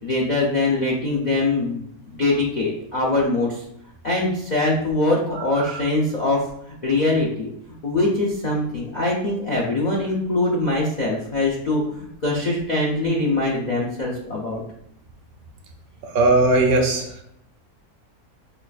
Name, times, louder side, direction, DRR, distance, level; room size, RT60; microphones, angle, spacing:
voice 1, 0.0-3.6 4.0-7.5 7.8-14.6, left 2 dB, 80° left, -3 dB, 0.4 m, -23 dB
voice 2, 5.3-5.7 16.0-17.2, right 2 dB, 80° right, 2 dB, 1.1 m, -20 dB
5.3 x 2.4 x 2.3 m, 0.74 s
omnidirectional pair, 1.5 m